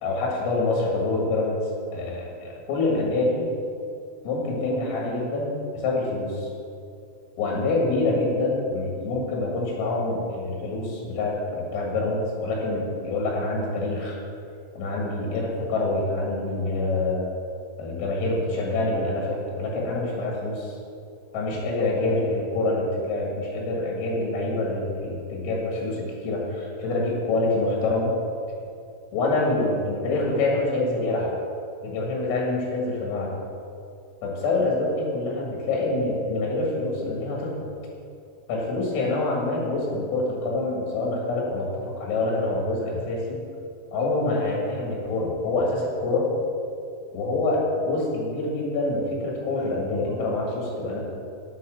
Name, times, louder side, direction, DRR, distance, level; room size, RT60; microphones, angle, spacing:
voice 1, 0.0-3.5 4.2-6.5 7.4-14.2 14.8-17.3 17.8-20.8 21.3-28.1 29.1-31.3 31.8-33.4 34.2-37.5 38.5-43.4 43.9-46.3 47.1-51.0, left 2 dB, 85° left, -2 dB, 4.6 m, -26 dB
9.5 x 8.5 x 6.3 m, 2.5 s
omnidirectional pair, 5.9 m